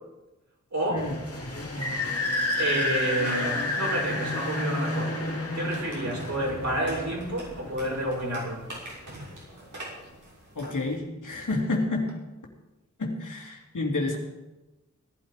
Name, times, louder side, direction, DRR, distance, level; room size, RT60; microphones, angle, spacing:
voice 1, 0.7-1.1 2.6-5.2 5.5-8.7, right 1 dB, 65° right, -3 dB, 6.6 m, -29 dB
sound 1, 1.0-8.3, left 2 dB, 50° left, 2.5 m, -30 dB
sound 2, 3.2-11.0, right 1 dB, 85° right, 6.4 m, -43 dB
voice 2, 10.5-12.1 13.0-14.2, left 2 dB, 90° left, 0 dB, 3.0 m, -29 dB
17.5 x 12.5 x 5.2 m, 1.1 s
wide cardioid pair, 55°, 30 cm